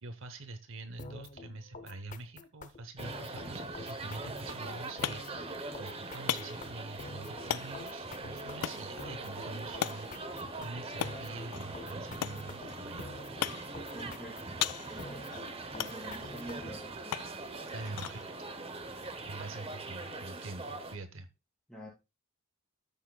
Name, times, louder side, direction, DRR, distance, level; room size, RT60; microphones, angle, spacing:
voice 1, 0.0-10.1 10.6-13.1 17.7-18.4 19.3-21.3, right 2 dB, 60° right, 0.8 m, -45 dB
sound 1, 1.0-16.8, left 3 dB, 35° left, 0.6 m, -48 dB
sound 2, 3.0-21.0, right 3 dB, 25° right, 0.7 m, -42 dB
sound 3, 4.4-20.0, left 12 dB, 90° left, 0.3 m, -41 dB
voice 2, 13.9-17.3 21.7-21.9, equal, 5° left, 3.7 m, -48 dB
13.0 x 6.4 x 2.2 m
head